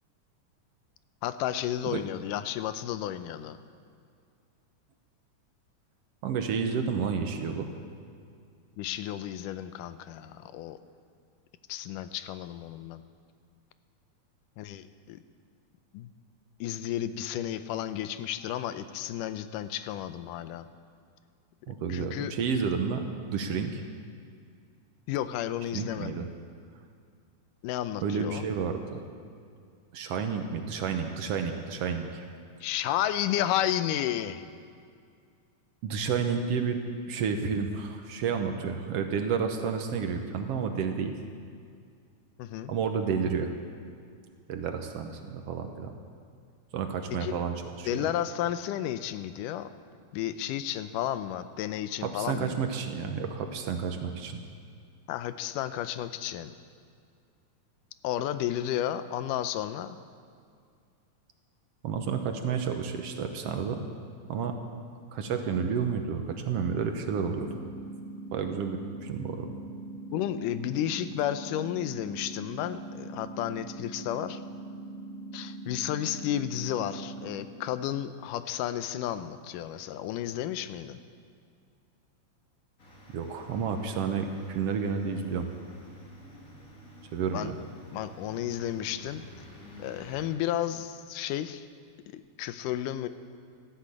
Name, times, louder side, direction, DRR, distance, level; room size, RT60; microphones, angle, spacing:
voice 1, 1.2-3.6 8.8-10.8 11.7-13.0 14.6-15.2 15.9-16.1 16.6-20.7 21.9-22.3 25.1-26.3 27.6-28.5 32.6-34.5 42.4-42.7 47.1-47.4 47.9-49.7 50.1-52.5 55.1-56.5 58.0-60.0 70.1-74.4 75.3-81.0 87.3-87.5 87.9-89.2 89.8-91.7 92.1-93.1, left 11 dB, 90° left, 12 dB, 2.3 m, -32 dB
voice 2, 6.2-7.7 21.7-23.8 25.7-26.3 28.0-29.0 29.9-32.2 35.8-36.8 37.1-41.1 42.7-43.5 44.5-45.9 46.7-48.1 52.0-54.4 61.8-63.8 64.3-64.6 65.1-67.6 68.3-69.5 83.1-85.5 87.1-87.6, right 6 dB, 65° right, 5 dB, 1.7 m, -31 dB
sound 1, 67.3-77.4, right 2 dB, 60° left, 4.1 m, -42 dB
sound 2, 82.8-90.2, right 1 dB, 30° left, 2.6 m, -50 dB
13.5 x 12.0 x 8.6 m, 2.3 s
omnidirectional pair, 3.6 m